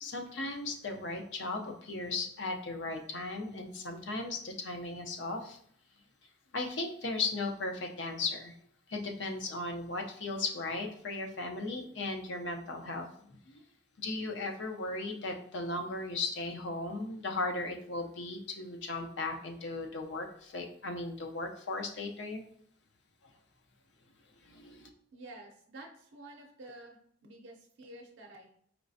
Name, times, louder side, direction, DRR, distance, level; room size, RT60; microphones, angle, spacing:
voice 1, 0.0-5.6 6.5-8.5 8.9-13.6 14.0-22.4 24.4-24.9, left 3 dB, 75° left, 3 dB, 0.6 m, -37 dB
voice 2, 25.1-28.5, right 1 dB, 80° right, 0 dB, 0.5 m, -50 dB
4.5 x 3.1 x 2.6 m, 0.63 s
head